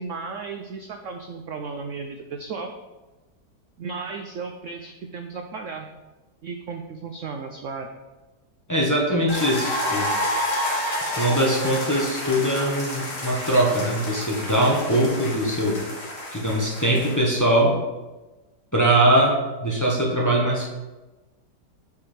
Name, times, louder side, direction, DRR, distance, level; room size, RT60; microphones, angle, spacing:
voice 1, 0.0-2.7 3.8-5.9 6.4-7.9, right 4 dB, 65° right, 5 dB, 0.7 m, -34 dB
voice 2, 8.7-10.1 11.2-15.8 16.3-17.7 18.7-19.3 19.6-20.7, right 1 dB, 15° left, -3 dB, 1.0 m, -21 dB
sound 1, 9.3-17.4, left 1 dB, 50° left, 1.9 m, -29 dB
7.0 x 4.7 x 5.0 m, 1.1 s
omnidirectional pair, 1.8 m